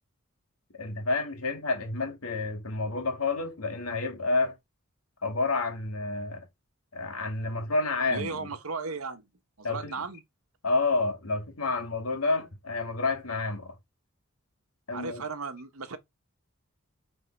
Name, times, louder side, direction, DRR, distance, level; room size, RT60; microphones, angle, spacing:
voice 1, 0.7-4.6 5.2-6.5 6.9-8.5 9.6-9.9 10.6-13.8 14.9-15.2, left 3 dB, 85° left, 2.1 m, -29 dB
voice 2, 8.1-9.3 9.6-10.2 14.9-16.0, right 4 dB, 85° right, 1.3 m, -36 dB
9.0 x 3.6 x 4.6 m
head